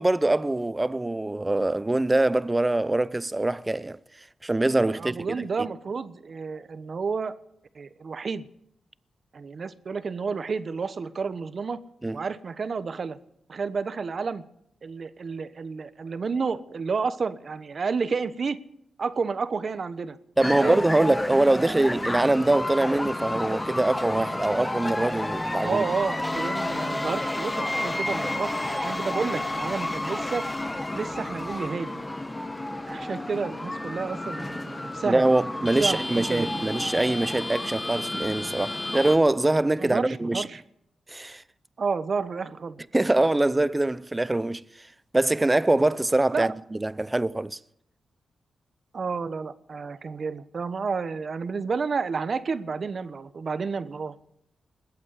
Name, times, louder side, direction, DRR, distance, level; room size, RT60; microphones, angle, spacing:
voice 1, 0.0-4.0 4.4-5.3 12.0-12.3 20.4-25.9 35.1-40.5 41.1-41.4 42.9-44.6 45.1-47.6, right 2 dB, 20° right, 0.6 m, -23 dB
voice 2, 5.0-7.4 7.7-8.4 9.3-11.8 12.1-13.2 13.5-14.4 14.8-18.6 19.0-20.2 20.6-20.8 21.6-22.0 25.6-30.5 30.9-32.0 32.9-35.2 35.6-36.6 39.8-40.6 41.8-42.8 46.3-46.5 48.9-54.2, right 5 dB, 55° right, 1.1 m, -30 dB
sound 1, 20.4-39.2, left 1 dB, 15° left, 1.3 m, -31 dB
20.5 x 8.5 x 8.3 m
cardioid pair, 70°, 0 cm